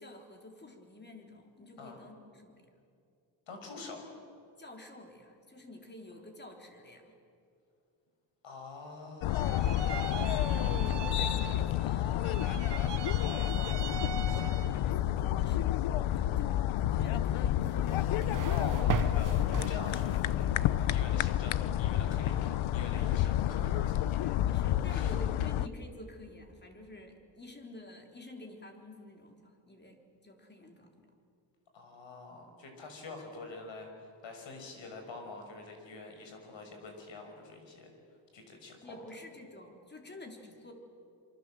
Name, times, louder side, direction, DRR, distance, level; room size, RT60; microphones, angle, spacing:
voice 1, 0.0-2.6 4.6-7.1 10.5-18.4 23.0-23.2 24.2-31.1 38.8-40.7, left 1 dB, 20° left, 3 dB, 3.8 m, -50 dB
voice 2, 3.5-4.1 8.4-9.8 18.5-24.3 24.8-25.1 31.7-37.9 38.3-39.0, left 3 dB, 65° left, 4 dB, 6.2 m, -46 dB
sound 1, 9.2-25.7, left 12 dB, 85° left, 0.8 m, -30 dB
sound 2, 9.3-11.9 12.2-14.9, right 9 dB, 60° right, 1.3 m, -42 dB
sound 3, 17.6-20.3, right 7 dB, 40° right, 1.1 m, -37 dB
26.5 x 25.5 x 7.8 m, 2.5 s
cardioid pair, 125°, 47 cm